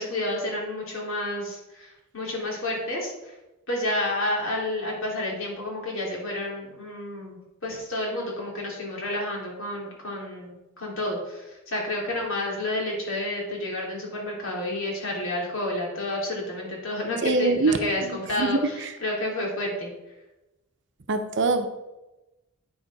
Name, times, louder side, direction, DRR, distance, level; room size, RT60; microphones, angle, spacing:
voice 1, 0.0-3.3 3.7-19.9, left 1 dB, 65° left, -2 dB, 3.0 m, -30 dB
voice 2, 17.2-17.8 18.0-18.1 18.4-18.6 21.1-21.7, right 3 dB, 55° right, 7 dB, 0.8 m, -23 dB
8.7 x 6.7 x 4.8 m, 1.0 s
head